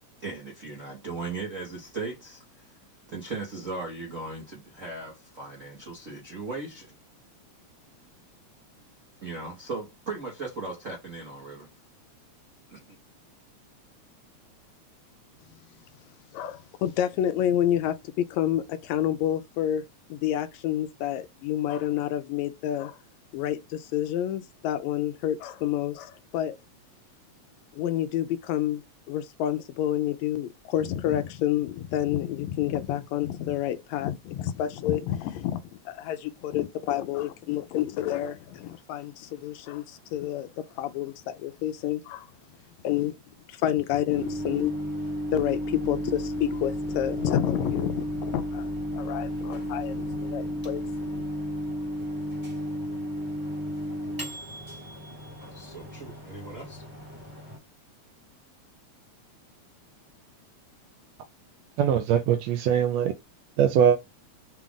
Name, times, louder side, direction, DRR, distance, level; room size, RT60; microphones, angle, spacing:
voice 1, 0.2-2.6 3.1-6.9 9.2-11.7 12.7-13.0 55.5-56.8, right 3 dB, 60° right, 0.8 m, -37 dB
voice 2, 16.3-19.8 20.1-23.0 23.3-26.6 27.7-28.8 29.1-35.6 35.9-40.5 40.8-42.3 42.8-43.1 43.5-44.7 45.3-51.2, left 11 dB, 80° left, 1.8 m, -29 dB
Microwave oven, 44.1-57.6, equal, 15° right, 0.8 m, -33 dB
voice 3, 61.8-63.1 63.6-64.0, right 9 dB, 80° right, 1.6 m, -21 dB
5.8 x 2.4 x 3.6 m
omnidirectional pair, 3.3 m